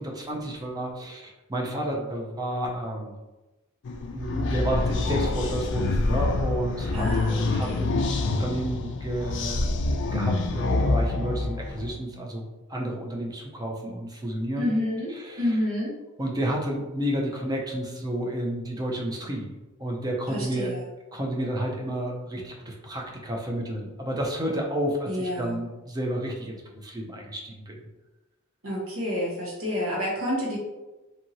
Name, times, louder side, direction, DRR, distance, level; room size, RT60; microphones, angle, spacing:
voice 1, 0.0-3.1 4.1-9.7 10.1-14.7 15.3-15.4 16.2-19.5 19.8-20.7 21.1-27.8, right 1 dB, 20° right, 0 dB, 0.5 m, -31 dB
sound 1, 3.8-11.9, left 2 dB, 60° left, 0.3 m, -26 dB
voice 2, 6.9-7.8 14.6-15.9 20.3-20.9 25.1-25.6 28.6-30.6, left 1 dB, 70° right, -4 dB, 1.1 m, -29 dB
2.7 x 2.6 x 2.8 m, 1.1 s
head